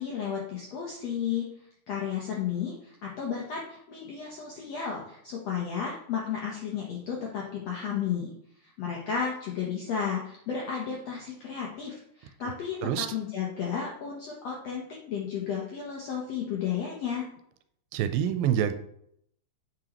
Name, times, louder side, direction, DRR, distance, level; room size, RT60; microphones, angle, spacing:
voice 1, 0.0-1.5 1.9-8.3 8.6-17.3, left 7 dB, 75° left, -2 dB, 1.5 m, -33 dB
voice 2, 17.9-18.7, right 9 dB, 85° right, 10 dB, 2.3 m, -26 dB
8.0 x 5.0 x 2.9 m, 0.71 s
omnidirectional pair, 4.1 m